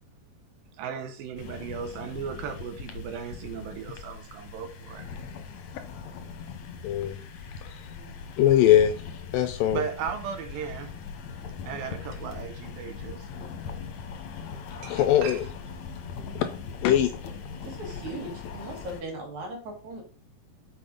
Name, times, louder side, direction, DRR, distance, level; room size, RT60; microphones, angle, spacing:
voice 1, 0.8-5.0 9.7-10.9 11.6-13.3 14.8-15.5, right 7 dB, 80° right, 2.4 m, -36 dB
sound 1, 1.4-19.0, left 5 dB, 65° left, 1.9 m, -40 dB
voice 2, 6.8-7.2 8.4-8.9 9.3-9.8 14.8-15.4 16.4-16.5 16.8-17.1, left 11 dB, 80° left, 2.1 m, -21 dB
voice 3, 17.6-20.0, right 2 dB, 55° right, 3.0 m, -39 dB
6.7 x 5.7 x 4.0 m
omnidirectional pair, 4.4 m